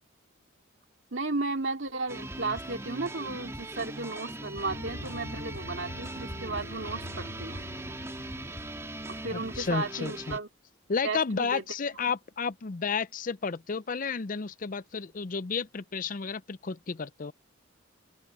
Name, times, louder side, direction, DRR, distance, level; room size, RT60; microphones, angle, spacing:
voice 1, 1.1-7.7 9.1-10.5 11.0-11.6, right 3 dB, 60° right, 2.6 m, -34 dB
sound 1, 2.1-10.4, right 1 dB, 15° right, 2.4 m, -40 dB
sound 2, 4.7-9.8, equal, 85° left, 7.7 m, -44 dB
voice 2, 9.3-10.4 10.9-17.3, left 5 dB, 40° left, 0.5 m, -32 dB
open air
head